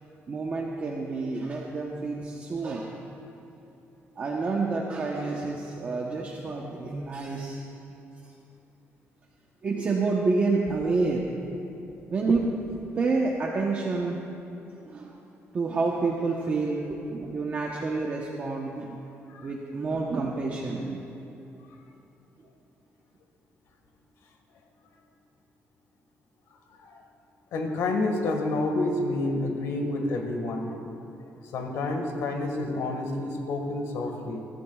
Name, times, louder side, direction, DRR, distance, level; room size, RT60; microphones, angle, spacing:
voice 1, 0.3-2.9 4.2-7.6 9.6-11.2 12.1-14.2 14.9-15.2 15.5-19.0 19.4-21.0, right 3 dB, 30° right, -2 dB, 1.0 m, -28 dB
voice 2, 27.5-30.7 31.5-34.4, left 2 dB, 90° left, 3 dB, 1.7 m, -29 dB
23.0 x 13.0 x 2.4 m, 2.8 s
cardioid pair, 160°, 5 cm